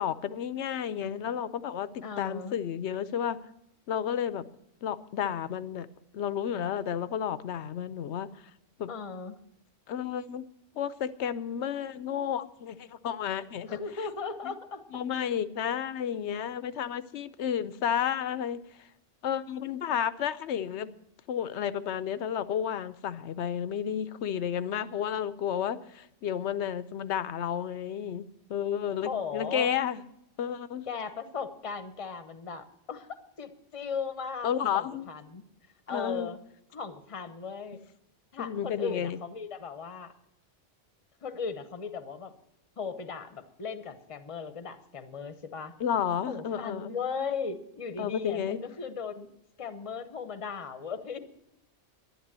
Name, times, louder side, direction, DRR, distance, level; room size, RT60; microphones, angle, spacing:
voice 1, 0.0-3.4 3.9-4.5 4.8-5.9 6.1-8.3 8.8-8.9 9.9-10.4 10.7-13.8 14.4-14.5 14.9-18.9 19.2-20.9 21.3-30.0 30.4-30.9 34.4-35.1 35.9-36.3 38.4-39.2 45.8-47.0 48.0-48.6, left 9 dB, 70° left, 15 dB, 1.0 m, -32 dB
voice 2, 2.0-2.6 8.9-9.4 13.7-15.0 29.0-29.7 30.9-33.1 33.4-35.4 35.9-36.4 36.7-37.8 38.3-40.1 41.2-42.3 42.8-45.7 46.2-49.3 49.6-51.2, left 5 dB, 30° left, 10 dB, 0.9 m, -37 dB
11.5 x 11.0 x 7.4 m, 0.81 s
omnidirectional pair, 1.2 m